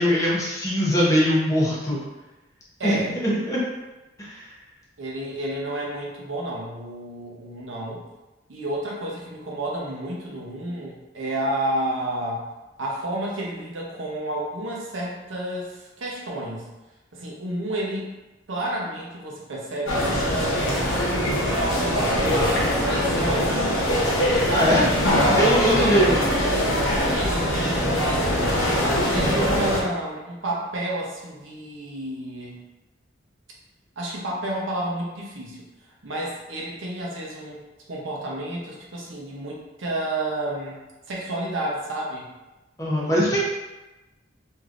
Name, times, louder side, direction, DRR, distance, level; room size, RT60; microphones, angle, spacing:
voice 1, 0.0-2.0 2.8-3.6 4.2-4.5 24.5-24.9 25.3-26.2 42.8-43.5, equal, 15° left, -5 dB, 0.7 m, -21 dB
voice 2, 2.8-3.2 5.0-8.0 8.5-12.5 12.8-16.7 17.1-18.1 18.5-20.6 21.4-24.1 24.4-24.9 25.4-26.1 27.1-28.4 29.1-32.6 34.0-35.6 36.0-37.6 37.9-40.8 41.1-42.3, right 1 dB, 75° right, -3 dB, 0.7 m, -31 dB
sound 1, 19.9-29.8, equal, 90° left, 0.8 m, -22 dB
3.3 x 2.7 x 2.4 m, 1.1 s
head